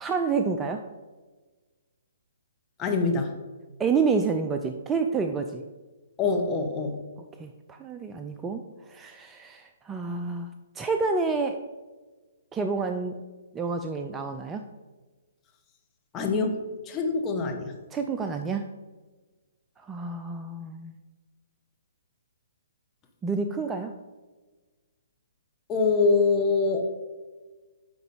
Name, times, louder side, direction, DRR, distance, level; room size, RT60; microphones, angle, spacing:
voice 1, 0.0-0.8 3.8-5.6 7.4-11.6 12.5-13.2 13.5-14.6 17.9-18.7 19.8-20.9 23.2-23.9, right 4 dB, 15° right, 6 dB, 0.4 m, -29 dB
voice 2, 2.8-3.3 6.2-7.0 16.1-17.7 25.7-26.9, left 4 dB, 20° left, 3 dB, 1.1 m, -24 dB
9.5 x 3.9 x 4.8 m, 1.3 s
figure-of-eight pair, 130°, 0 cm